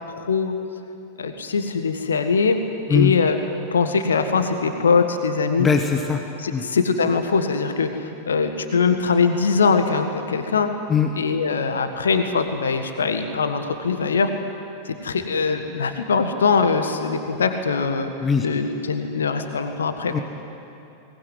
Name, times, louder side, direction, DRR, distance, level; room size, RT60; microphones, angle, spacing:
voice 1, 0.1-0.5 1.2-2.6 2.9-3.4 3.7-5.7 6.4-10.7 11.2-14.3 14.8-18.1 18.4-20.2, left 5 dB, 70° left, 7 dB, 1.5 m, -22 dB
voice 2, 5.6-6.2 6.5-6.6 10.9-11.1 18.2-18.5 20.1-20.2, left 6 dB, 20° left, 4 dB, 1.5 m, -20 dB
22.5 x 19.5 x 9.6 m, 2.8 s
figure-of-eight pair, 90°, 0 cm